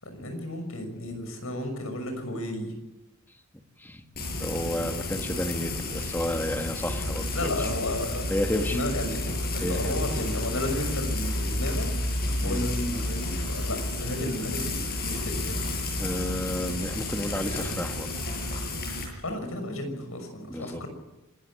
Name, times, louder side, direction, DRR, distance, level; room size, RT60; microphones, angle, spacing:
voice 1, 0.0-2.7 7.3-11.9 12.4-15.2 15.4-15.6 19.2-20.9, left 1 dB, 80° left, 6 dB, 6.3 m, -33 dB
Frying (food), 4.1-19.0, left 2 dB, 45° left, 7.6 m, -31 dB
voice 2, 4.4-7.7 8.3-8.8 9.6-10.0 12.4-12.7 16.0-18.5 20.5-20.8, left 1 dB, 10° left, 5 dB, 1.8 m, -32 dB
26.0 x 14.0 x 8.9 m, 1.0 s
head